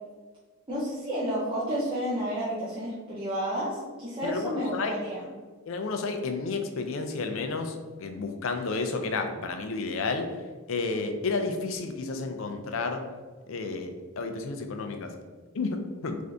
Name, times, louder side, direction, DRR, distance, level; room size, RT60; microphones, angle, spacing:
voice 1, 0.7-5.2, equal, 25° right, -10 dB, 0.6 m, -31 dB
voice 2, 4.2-4.9 5.7-10.3 10.7-13.1 13.5-15.1 15.5-16.2, left 3 dB, 70° left, 5 dB, 0.4 m, -31 dB
3.6 x 2.6 x 3.3 m, 1.4 s
head